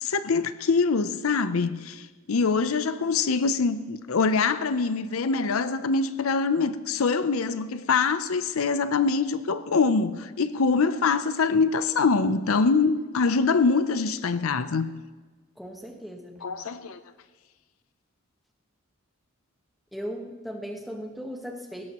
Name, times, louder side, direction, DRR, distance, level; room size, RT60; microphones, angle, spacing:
voice 1, 0.0-14.9 16.4-17.0, left 4 dB, 80° left, 0.6 m, -24 dB
voice 2, 15.6-16.4 19.9-21.9, equal, ahead, 1.3 m, -37 dB
19.0 x 17.0 x 3.0 m
head